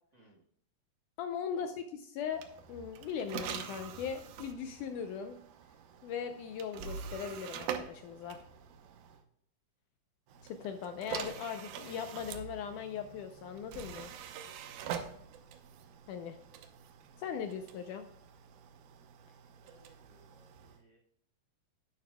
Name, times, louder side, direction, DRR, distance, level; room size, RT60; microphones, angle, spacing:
voice 1, 0.1-0.4 1.5-1.8 19.6-21.0, right 2 dB, 40° right, 0 dB, 1.7 m, -64 dB
voice 2, 1.2-5.4 6.0-8.4 10.4-14.1 16.1-16.4 17.2-18.1, left 7 dB, 75° left, 7 dB, 2.0 m, -39 dB
sound 1, 2.3-9.2 10.3-20.8, right 8 dB, 85° right, 2.7 m, -45 dB
11.5 x 10.5 x 2.3 m, 0.70 s
omnidirectional pair, 4.1 m